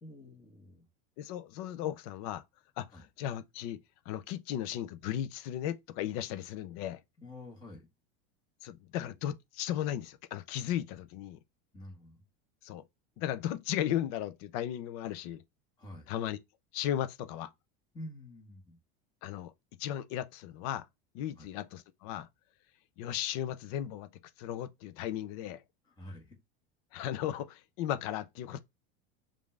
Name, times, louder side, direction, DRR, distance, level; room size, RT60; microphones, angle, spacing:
voice 1, 0.0-0.9 2.9-3.0 7.2-7.9 11.7-12.2 15.8-16.1 17.9-18.8 21.4-21.5 25.9-26.3, left 1 dB, 15° left, 1.3 m, -48 dB
voice 2, 1.2-2.4 2.8-3.8 4.1-7.0 8.6-11.4 12.6-12.8 13.2-15.4 16.1-16.4 16.7-17.5 19.2-19.5 19.8-20.9 21.1-22.3 23.0-24.1 24.4-25.6 26.9-28.6, left 11 dB, 40° left, 0.4 m, -36 dB
5.2 x 2.5 x 3.2 m
supercardioid pair, 180°, 31 cm